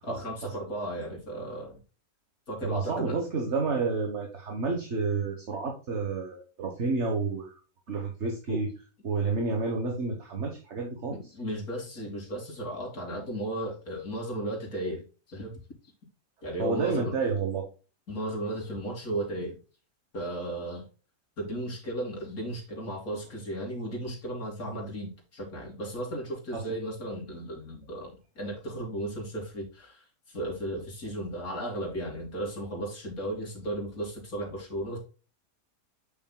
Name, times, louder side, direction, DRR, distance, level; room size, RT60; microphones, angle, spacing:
voice 1, 0.0-1.8 2.5-3.2 8.5-8.6 11.1-15.0 15.3-15.6 16.4-17.1 18.1-19.6 20.1-20.8 21.4-35.0, right 1 dB, 75° left, -1 dB, 3.2 m, -35 dB
voice 2, 2.6-7.5 7.9-8.7 9.0-11.3 16.6-17.7 24.6-24.8 26.5-26.7, right 4 dB, 50° right, 2 dB, 1.6 m, -30 dB
8.0 x 6.2 x 2.3 m, 0.34 s
omnidirectional pair, 1.5 m